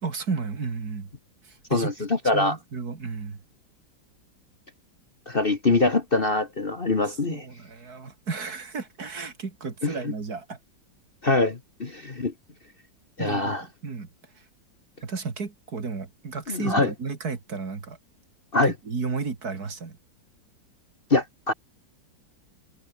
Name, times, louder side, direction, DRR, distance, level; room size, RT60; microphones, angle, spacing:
voice 1, 0.0-1.1 1.4-1.9 2.3-3.4 7.1-10.6 13.2-13.6 13.8-14.1 15.0-18.0 18.8-20.0, right 4 dB, 50° right, 2.9 m, -33 dB
voice 2, 1.7-2.6 5.3-7.4 9.8-10.1 11.2-12.3 13.2-13.6 16.5-16.9 18.5-18.7 21.1-21.5, left 2 dB, 30° left, 1.5 m, -24 dB
omnidirectional pair, 2.1 m